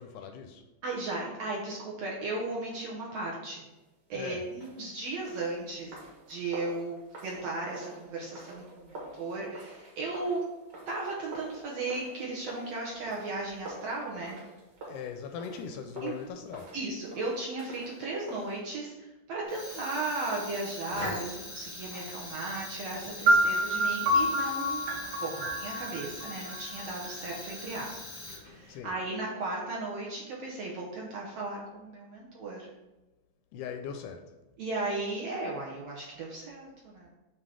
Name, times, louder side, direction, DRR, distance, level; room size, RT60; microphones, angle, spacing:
voice 1, 0.0-0.6 4.1-4.5 14.9-16.7 28.7-28.9 33.5-34.3, left 7 dB, 80° left, 5 dB, 1.9 m, -40 dB
voice 2, 0.8-3.7 4.1-6.0 6.3-10.4 10.9-14.4 16.0-16.1 16.7-28.0 28.5-32.7 34.6-37.1, right 2 dB, 70° right, -3 dB, 1.6 m, -36 dB
sound 1, 4.5-18.6, right 1 dB, 45° right, 1.6 m, -48 dB
Fire, 19.4-28.8, left 2 dB, 35° left, 0.8 m, -42 dB
sound 2, 23.3-27.1, right 1 dB, 90° right, 2.6 m, -27 dB
7.6 x 2.8 x 4.8 m, 1.1 s
omnidirectional pair, 3.7 m